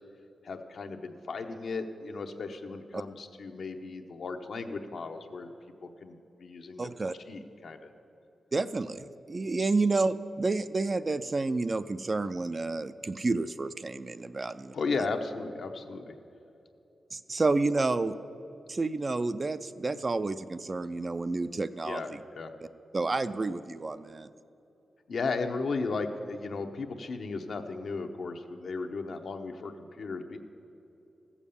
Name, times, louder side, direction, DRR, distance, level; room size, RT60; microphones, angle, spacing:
voice 1, 0.4-5.5 5.8-6.9 7.3-7.9 14.7-16.1 21.8-22.1 22.3-22.5 25.1-30.4, left 4 dB, 65° left, 6 dB, 0.8 m, -35 dB
voice 2, 6.8-7.1 8.5-14.7 17.1-18.1 18.7-22.2 22.9-24.3, right 3 dB, 35° right, 12 dB, 0.4 m, -30 dB
14.5 x 7.2 x 6.9 m, 2.9 s
wide cardioid pair, 120°, 0 cm